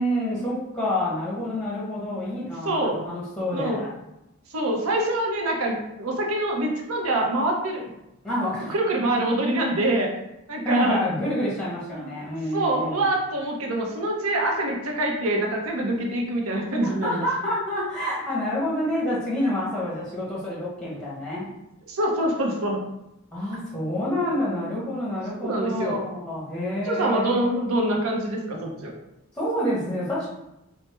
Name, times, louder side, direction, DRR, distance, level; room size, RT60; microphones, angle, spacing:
voice 1, 0.0-3.9 8.2-8.7 10.6-13.0 16.8-21.5 23.3-27.5 29.3-30.3, left 1 dB, 5° left, -6 dB, 0.7 m, -28 dB
voice 2, 2.6-3.0 3.5-3.8 4.5-7.9 8.7-10.1 10.5-11.0 11.9-12.1 12.5-17.3 21.8-22.8 25.4-26.0 26.8-28.9, right 1 dB, 85° right, 0 dB, 0.7 m, -25 dB
3.2 x 2.0 x 3.1 m, 0.89 s
head